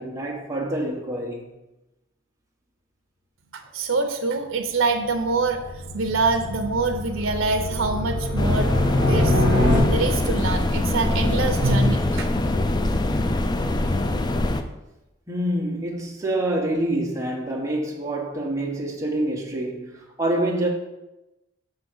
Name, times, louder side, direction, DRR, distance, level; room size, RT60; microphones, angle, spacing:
voice 1, 0.0-1.5 14.2-14.4 15.3-20.7, right 1 dB, 15° right, 1.2 m, -27 dB
voice 2, 3.5-9.3 9.8-12.3, right 3 dB, 80° right, 0.7 m, -25 dB
sound 1, 5.1-10.4, left 1 dB, 45° left, 1.9 m, -24 dB
sound 2, 8.4-14.6, left 1 dB, 20° left, 0.4 m, -23 dB
6.2 x 3.8 x 6.2 m
head